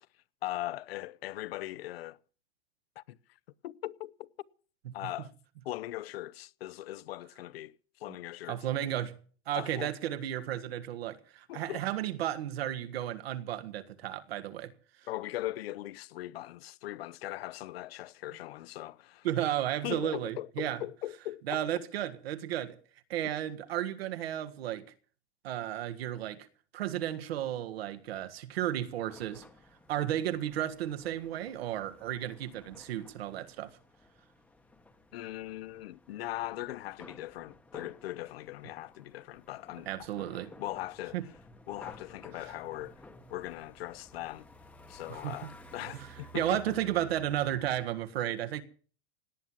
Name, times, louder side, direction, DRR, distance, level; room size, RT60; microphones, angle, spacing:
voice 1, 0.4-2.2 3.0-3.2 3.6-4.3 4.9-5.3 5.6-8.7 9.5-9.9 11.5-11.8 15.1-19.5 19.8-21.6 35.1-39.9 40.6-41.3 41.7-43.0 43.3-44.5 44.9-46.6, left 15 dB, 70° left, 0.8 m, -40 dB
voice 2, 8.5-9.2 9.5-14.7 19.2-20.8 21.5-22.8 23.1-24.8 25.4-26.5 26.7-29.4 29.9-33.7 39.9-40.5 41.1-41.2 45.1-45.4 46.0-46.1 46.3-48.6, right 12 dB, 75° right, 1.7 m, -33 dB
sound 1, 29.1-47.8, left 1 dB, 5° left, 0.9 m, -55 dB
18.0 x 9.5 x 7.3 m
supercardioid pair, 165°, 31 cm